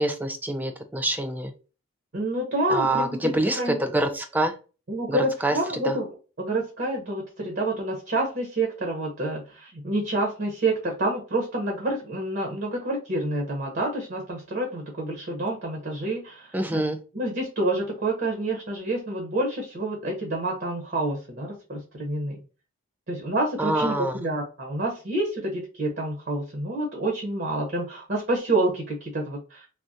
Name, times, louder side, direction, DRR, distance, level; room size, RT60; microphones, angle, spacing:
voice 1, 0.0-1.5 2.7-4.5 5.1-5.5 5.8-6.0 16.5-17.0 23.6-24.1, right 1 dB, 10° right, 7 dB, 0.3 m, -26 dB
voice 2, 2.1-3.8 4.9-6.1 6.4-16.6 17.1-22.4 23.1-29.7, right 2 dB, 50° right, 0 dB, 0.8 m, -28 dB
3.4 x 2.1 x 2.6 m, 0.34 s
head